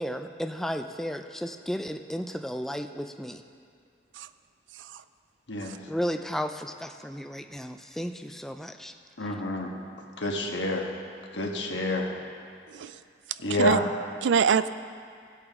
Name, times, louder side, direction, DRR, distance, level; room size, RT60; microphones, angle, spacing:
voice 1, 0.0-3.4 5.9-8.9 9.2-9.3, equal, ahead, 6 dB, 0.3 m, -34 dB
voice 2, 9.2-9.7 10.2-10.9 11.3-12.1 13.4-13.8, left 1 dB, 80° left, 1 dB, 1.4 m, -28 dB
voice 3, 12.7-13.0 13.6-13.8 14.2-14.7, right 6 dB, 85° right, 13 dB, 0.4 m, -25 dB
17.5 x 8.2 x 3.6 m, 2.2 s
head